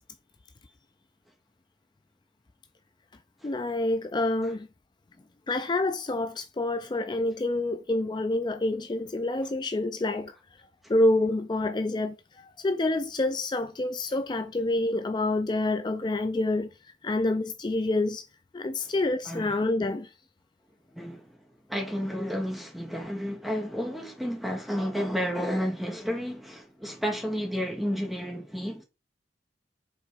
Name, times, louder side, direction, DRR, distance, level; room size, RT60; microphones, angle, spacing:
voice 1, 3.4-4.7 5.5-10.3 10.9-16.7 17.0-18.2 18.5-20.1, left 2 dB, 25° left, 0.4 m, -27 dB
voice 2, 20.9-21.2 21.7-28.8, equal, ahead, 1.1 m, -31 dB
5.0 x 3.9 x 5.1 m
head